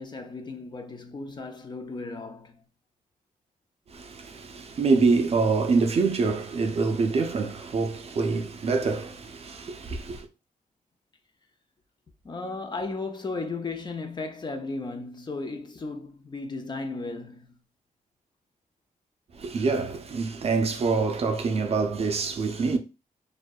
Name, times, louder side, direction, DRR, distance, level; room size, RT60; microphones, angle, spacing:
voice 1, 0.0-2.6 12.2-17.6, left 3 dB, 30° left, 0.4 m, -35 dB
voice 2, 3.9-10.3 19.3-22.8, right 4 dB, 45° right, 0.4 m, -25 dB
2.6 x 2.1 x 2.2 m
wide cardioid pair, 125°, 15 cm